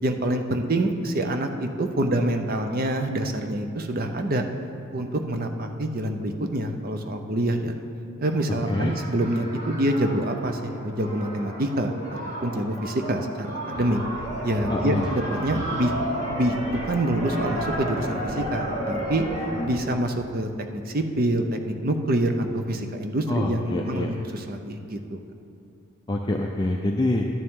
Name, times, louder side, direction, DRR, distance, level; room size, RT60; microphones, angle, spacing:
voice 1, 0.0-4.4 4.9-7.7 8.2-11.9 12.4-14.0 14.4-15.9 16.3-19.2 19.6-25.2, right 1 dB, 40° right, 5 dB, 0.6 m, -26 dB
sound 1, 8.2-19.6, right 1 dB, 90° right, 2.8 m, -33 dB
sound 2, 13.7-19.9, equal, 5° right, 2.1 m, -39 dB
voice 2, 14.7-15.1 23.3-24.1 26.1-27.3, left 1 dB, 20° left, 1 dB, 0.4 m, -25 dB
12.0 x 9.5 x 3.7 m, 2.6 s
head